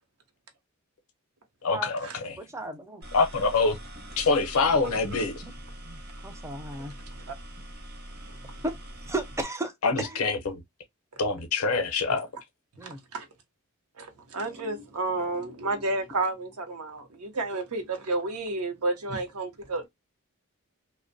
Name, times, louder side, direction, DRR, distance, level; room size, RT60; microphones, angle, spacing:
voice 1, 1.6-2.3 3.1-3.8 4.2-5.4 9.8-10.6 11.2-12.3, left 4 dB, 70° left, 0.5 m, -25 dB
voice 2, 2.4-3.0 5.4-5.5 5.8-6.9 8.6-8.7 9.1-9.7 10.0-10.2 12.8-13.0, right 1 dB, 15° right, 0.4 m, -34 dB
sound 1, 3.0-9.4, right 1 dB, 45° right, 0.8 m, -43 dB
voice 3, 12.8-13.3 14.0-19.9, right 2 dB, 80° right, 0.7 m, -31 dB
2.5 x 2.0 x 2.5 m
head